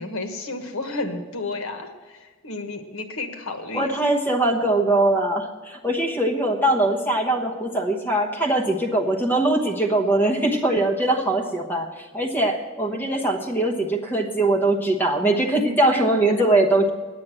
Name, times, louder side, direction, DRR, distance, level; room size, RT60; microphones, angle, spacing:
voice 1, 0.0-3.9, left 2 dB, 80° left, 6 dB, 1.3 m, -32 dB
voice 2, 3.7-16.9, right 2 dB, 10° left, 1 dB, 1.1 m, -21 dB
9.5 x 9.3 x 7.6 m, 1.4 s
head